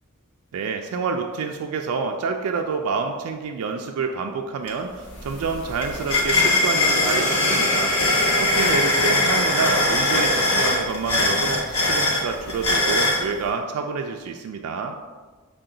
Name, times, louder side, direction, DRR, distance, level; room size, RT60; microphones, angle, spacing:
voice 1, 0.5-15.0, right 5 dB, 70° right, 4 dB, 0.3 m, -28 dB
sound 1, 4.7-4.8 5.1-13.2, left 1 dB, 90° left, 1.0 m, -21 dB
5.7 x 2.2 x 3.7 m, 1.4 s
head